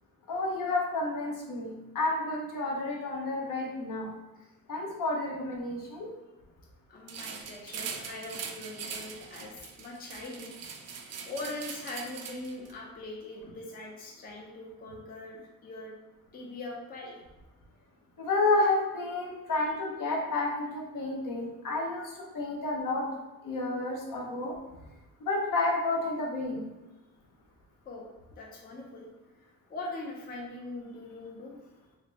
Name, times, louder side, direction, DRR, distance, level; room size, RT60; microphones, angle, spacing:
voice 1, 0.3-4.1 4.7-6.1 18.2-23.1 23.4-24.5 25.2-26.7, left 2 dB, 65° left, -1 dB, 0.9 m, -30 dB
voice 2, 6.9-10.6 11.2-15.9 16.3-17.2 27.9-29.1 29.4-31.6, left 2 dB, 25° left, -1 dB, 0.5 m, -42 dB
sound 1, 7.1-12.7, right 6 dB, 50° right, 0.4 m, -41 dB
3.7 x 2.0 x 3.3 m, 1.0 s
cardioid pair, 130°, 34 cm